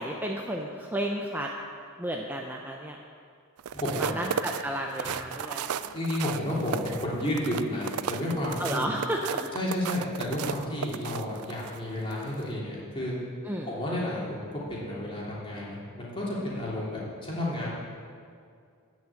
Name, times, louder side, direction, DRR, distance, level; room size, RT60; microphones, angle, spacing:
voice 1, 0.0-1.5 2.0-3.0 4.0-5.8 8.6-9.5 13.4-13.7, right 1 dB, 10° right, 0 dB, 0.6 m, -32 dB
sound 1, 3.6-11.8 12.2-12.4, right 8 dB, 85° right, 0.4 m, -34 dB
voice 2, 3.7-4.1 5.0-5.1 5.8-8.9 9.5-13.1 13.7-17.7, left 1 dB, 25° left, -6 dB, 3.1 m, -31 dB
14.0 x 6.1 x 8.9 m, 2.2 s
head